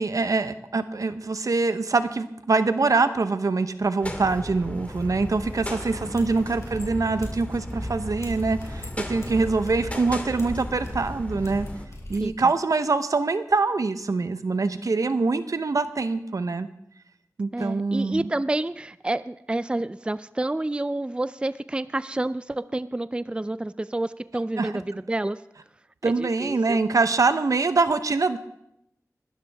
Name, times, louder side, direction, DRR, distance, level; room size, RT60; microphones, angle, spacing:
voice 1, 0.0-11.7 12.1-16.7 17.4-18.3 24.6-24.7 26.0-28.4, right 3 dB, 75° right, 11 dB, 0.8 m, -24 dB
sound 1, 4.0-11.9, left 1 dB, 25° left, 2.0 m, -35 dB
sound 2, 6.1-12.3, left 1 dB, 60° left, 3.7 m, -41 dB
voice 2, 12.2-12.5 17.5-25.4 26.0-26.8, right 2 dB, 15° right, 15 dB, 0.4 m, -29 dB
21.0 x 12.5 x 3.5 m, 0.80 s
wide cardioid pair, 60°, 6 cm